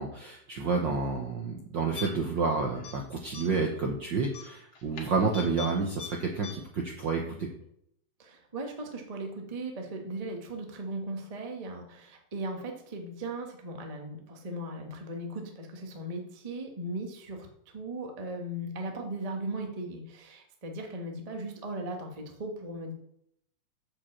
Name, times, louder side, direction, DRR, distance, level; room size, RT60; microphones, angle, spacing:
voice 1, 0.0-7.5, right 4 dB, 70° right, 1 dB, 1.1 m, -30 dB
sound 1, 2.0-2.4 2.7-3.0 3.3-3.7 4.3-5.7 6.0-6.1 6.4-6.5, left 7 dB, 50° left, 2.4 m, -41 dB
voice 2, 8.2-17.5 17.7-22.9, right 1 dB, 45° right, 2 dB, 0.4 m, -38 dB
7.5 x 5.0 x 7.3 m, 0.74 s
omnidirectional pair, 3.3 m